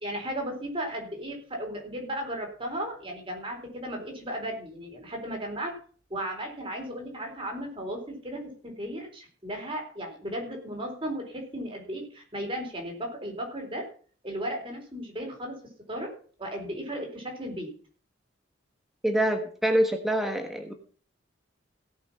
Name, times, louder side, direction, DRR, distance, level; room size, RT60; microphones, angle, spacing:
voice 1, 0.0-5.8 6.1-13.8 14.2-15.6 15.9-16.1 16.4-17.7, right 1 dB, 25° right, 1 dB, 4.0 m, -35 dB
voice 2, 19.0-20.7, right 1 dB, ahead, 4 dB, 1.3 m, -25 dB
17.0 x 6.1 x 5.9 m, 0.43 s
head